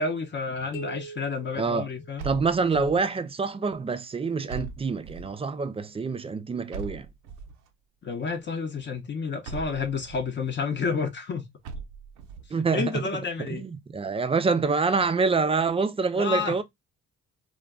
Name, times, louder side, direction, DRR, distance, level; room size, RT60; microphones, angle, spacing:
voice 1, 0.0-2.2 2.7-2.9 8.0-11.5 12.7-13.7 16.2-16.6, left 4 dB, 40° left, 0.6 m, -30 dB
sound 1, 0.7-2.7, right 5 dB, 85° left, 1.1 m, -43 dB
voice 2, 1.6-1.9 2.2-7.1 12.5-13.0 13.5-16.6, right 4 dB, 20° right, 0.3 m, -26 dB
sound 2, 2.2-3.1 4.5-5.4 6.7-7.7 9.4-10.3 11.6-12.5, right 4 dB, 90° right, 0.6 m, -39 dB
2.2 x 2.2 x 3.5 m
cardioid pair, 90°, 30 cm